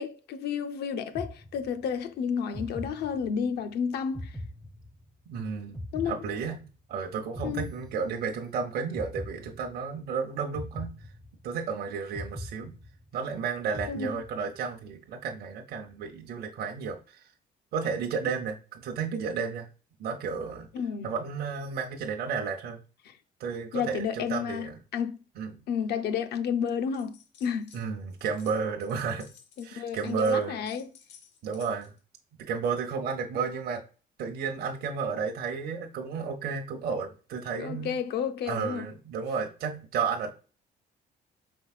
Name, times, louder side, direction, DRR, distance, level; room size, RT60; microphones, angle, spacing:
voice 1, 0.0-4.4 5.9-6.2 7.4-7.7 13.9-14.2 20.7-21.1 23.0-23.2 23.7-25.2 25.7-27.7 29.6-30.8 37.6-38.9, left 7 dB, 65° left, 0.6 m, -31 dB
sound 1, 1.1-2.0 2.5-3.6 4.1-5.3 5.7-6.9 7.3-8.5 8.9-10.0 10.5-11.7 12.1-13.3 13.7-14.6, left 1 dB, ahead, 0.3 m, -41 dB
voice 2, 5.3-5.8 6.1-6.6 6.9-10.9 11.4-12.7 13.1-17.3 17.7-19.7 20.0-20.7 21.0-22.8 23.4-24.8 25.4-25.6 27.7-29.3 29.6-30.6 31.4-31.9 32.4-33.8 34.2-37.9 38.5-40.3, right 5 dB, 60° right, 0.7 m, -32 dB
sound 2, 26.9-27.8 28.1-32.0, left 7 dB, 85° left, 1.2 m, -55 dB
4.6 x 3.9 x 2.3 m
cardioid pair, 145°, 18 cm